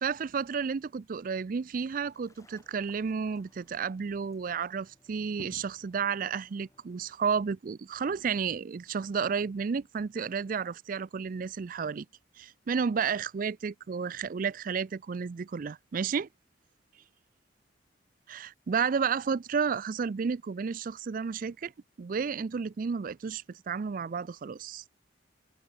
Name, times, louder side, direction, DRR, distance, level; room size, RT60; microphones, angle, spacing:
voice 1, 0.0-12.1 12.4-16.3 18.3-21.7 22.0-24.9, right 6 dB, 45° right, 0.4 m, -32 dB
sound 1, 2.0-7.2, equal, 15° left, 2.4 m, -56 dB
head